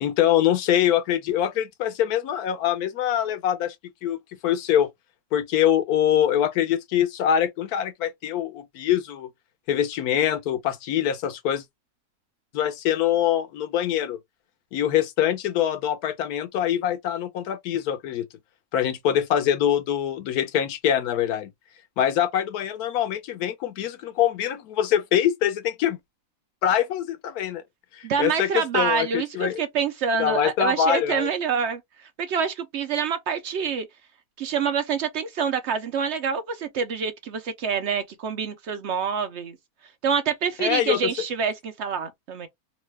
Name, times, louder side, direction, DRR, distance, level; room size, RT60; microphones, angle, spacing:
voice 1, 0.0-3.8 4.0-4.2 4.4-4.9 5.3-9.3 9.7-11.6 12.5-14.2 14.7-18.3 18.7-21.5 22.0-26.0 26.6-27.6 27.9-29.6 30.2-31.3 40.6-41.1, left 10 dB, 85° left, 1.2 m, -24 dB
voice 2, 28.0-33.9 34.4-39.6 40.0-42.5, right 6 dB, 65° right, 0.7 m, -26 dB
3.1 x 2.1 x 3.2 m
omnidirectional pair, 1.6 m